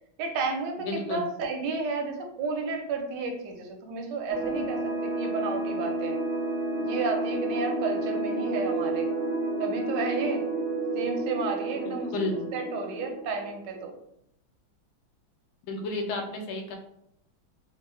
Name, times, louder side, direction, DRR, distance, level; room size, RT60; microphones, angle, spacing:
voice 1, 0.2-6.2 6.8-9.1 9.6-10.5 10.9-12.1 12.5-13.9, right 3 dB, 75° right, 3 dB, 1.0 m, -32 dB
voice 2, 0.8-1.2 12.1-12.4 15.6-16.8, left 2 dB, 85° left, 2 dB, 1.4 m, -31 dB
sound 1, 4.3-13.6, right 2 dB, 55° left, 1.3 m, -30 dB
3.6 x 2.1 x 3.1 m, 0.75 s
omnidirectional pair, 2.3 m